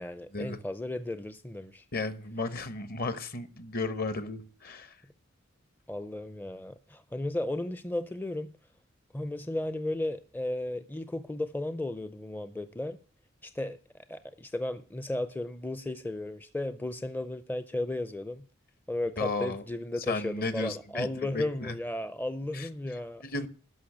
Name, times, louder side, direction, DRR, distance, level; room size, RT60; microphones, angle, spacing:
voice 1, 0.0-1.8 5.9-8.5 9.1-13.0 13.4-13.8 14.1-18.5 18.9-23.3, left 1 dB, 10° left, 11 dB, 0.5 m, -34 dB
voice 2, 1.9-5.0 19.2-19.6 20.1-21.8 22.5-22.7 23.2-23.5, left 3 dB, 50° left, 12 dB, 1.1 m, -34 dB
12.5 x 5.6 x 8.5 m, 0.40 s
head